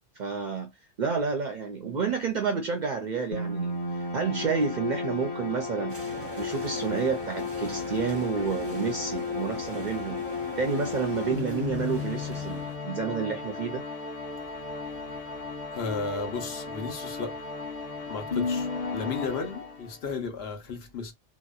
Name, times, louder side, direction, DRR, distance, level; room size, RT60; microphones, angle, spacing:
voice 1, 0.2-0.7 1.0-6.0 6.4-10.2 10.6-13.8, right 5 dB, 60° right, 0.5 m, -30 dB
sound 1, 3.3-20.1, left 4 dB, 35° left, 0.9 m, -34 dB
sound 2, 5.9-12.8, right 2 dB, 15° right, 0.6 m, -43 dB
voice 2, 15.7-17.4 18.1-21.1, left 4 dB, 65° left, 1.0 m, -34 dB
2.8 x 2.0 x 2.2 m
omnidirectional pair, 1.2 m